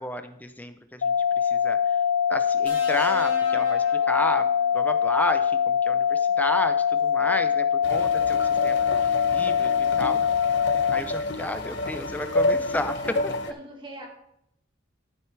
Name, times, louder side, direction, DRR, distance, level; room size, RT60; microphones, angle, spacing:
voice 1, 0.0-2.0 2.3-4.5 4.7-10.2 10.9-13.0, left 1 dB, 10° left, 9 dB, 0.5 m, -32 dB
sound 1, 1.0-11.0, left 8 dB, 85° left, 0.4 m, -23 dB
sound 2, 2.7-4.9 6.2-6.4, left 2 dB, 30° left, 3.4 m, -40 dB
voice 2, 7.2-7.5 13.0-13.2 13.5-14.1, right 1 dB, 25° right, 0 dB, 2.0 m, -43 dB
sound 3, 7.8-13.5, left 2 dB, 65° left, 0.8 m, -29 dB
13.0 x 7.7 x 3.3 m, 0.75 s
head